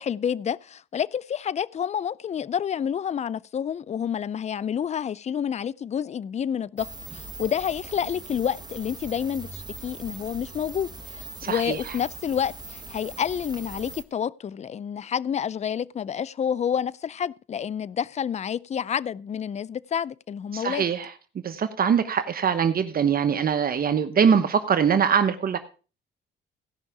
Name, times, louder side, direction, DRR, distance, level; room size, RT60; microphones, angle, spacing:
voice 1, 0.0-20.8, left 8 dB, 35° left, 0.4 m, -29 dB
sound 1, 6.8-14.0, right 3 dB, 20° right, 1.3 m, -41 dB
voice 2, 11.4-12.0 20.5-21.1 21.4-25.6, right 7 dB, 50° right, 1.0 m, -23 dB
16.5 x 5.7 x 4.8 m
cardioid pair, 90°, 20 cm